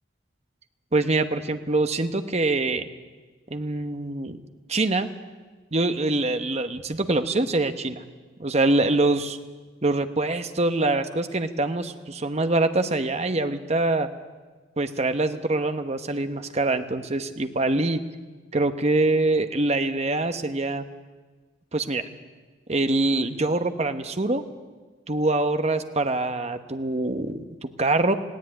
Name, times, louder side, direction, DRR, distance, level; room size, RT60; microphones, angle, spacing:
voice 1, 0.9-2.8 3.5-4.4 4.7-5.1 5.7-8.0 8.4-9.4 9.8-14.1 14.8-18.0 18.5-20.8 21.7-22.0 22.7-24.4 25.1-28.2, right 2 dB, 35° right, 8 dB, 1.1 m, -24 dB
18.0 x 16.5 x 9.8 m, 1.4 s
head